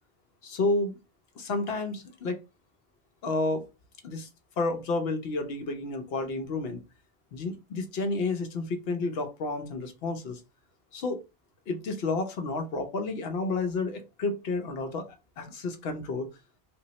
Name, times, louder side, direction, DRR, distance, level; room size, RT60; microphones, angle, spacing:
voice 1, 0.4-1.0 1.4-2.4 3.2-3.7 4.0-4.3 4.6-6.8 7.3-10.4 10.9-11.2 11.7-15.1 15.4-16.3, left 3 dB, 70° left, 0.9 m, -30 dB
3.7 x 2.0 x 2.7 m
omnidirectional pair, 1.1 m